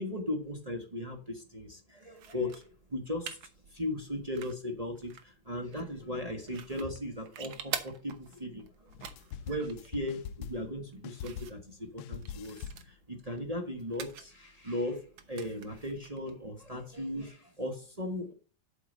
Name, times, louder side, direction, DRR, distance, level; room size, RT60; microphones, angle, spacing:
voice 1, 0.0-3.4 3.7-8.9 9.5-18.3, left 1 dB, 25° right, 1 dB, 0.7 m, -37 dB
sound 1, 2.1-17.3, right 8 dB, 65° right, 1.2 m, -47 dB
sound 2, 8.9-10.8 11.0-11.7 12.0-12.9, left 8 dB, 80° left, 1.4 m, -43 dB
7.9 x 7.1 x 4.1 m, 0.35 s
omnidirectional pair, 3.4 m